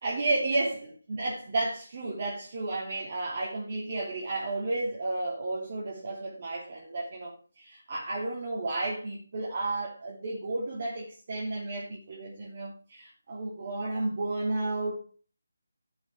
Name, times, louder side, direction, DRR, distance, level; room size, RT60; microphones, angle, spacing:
voice 1, 0.0-14.9, right 2 dB, 40° right, 3.1 m, -32 dB
11.0 x 6.4 x 6.0 m
figure-of-eight pair, 165°, 0 cm